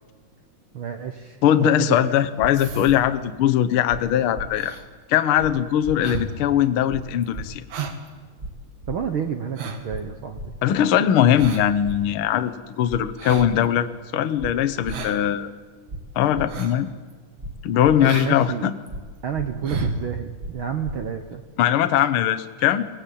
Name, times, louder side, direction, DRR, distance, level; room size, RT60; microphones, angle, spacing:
voice 1, 0.7-2.2 8.9-10.4 18.0-18.7 19.2-21.4, right 7 dB, 70° right, 7 dB, 1.2 m, -30 dB
voice 2, 1.4-4.8 5.1-7.6 10.6-13.9 14.1-15.5 16.1-16.9 17.6-18.7 21.6-22.9, left 10 dB, 75° left, 10 dB, 1.2 m, -20 dB
sound 1, 2.4-2.5 2.8-3.0 3.9-4.0 4.3-4.5 5.4-5.5 5.8-6.0 6.9-7.0 7.3-7.5 8.4-8.5 8.8-9.0 9.9-10.0 10.3-10.5 11.4-11.5 11.8-12.0 12.9-13.0 13.3-13.5 14.4-14.5 14.8-15.0 15.9-16.0 16.3-16.5 17.4-17.5 17.8-18.0 18.9-19.0 19.3-19.5 20.4-20.5 20.8-21.0, right 1 dB, 30° right, 0.7 m, -34 dB
sound 2, 2.5-3.2 4.5-4.8 5.3-5.5 6.0-6.4 6.8-6.9 7.2-7.3 7.7-8.1 8.4-8.5 9.3-10.0 11.4-11.8 13.2-13.6 14.9-15.2 15.6-15.7 16.5-16.8 17.1-17.2 18.0-18.3 18.7-19.1 19.5-20.0 21.0-21.1 21.3-21.4, right 4 dB, 55° right, 2.6 m, -32 dB
23.0 x 18.0 x 8.5 m, 1.5 s
omnidirectional pair, 3.8 m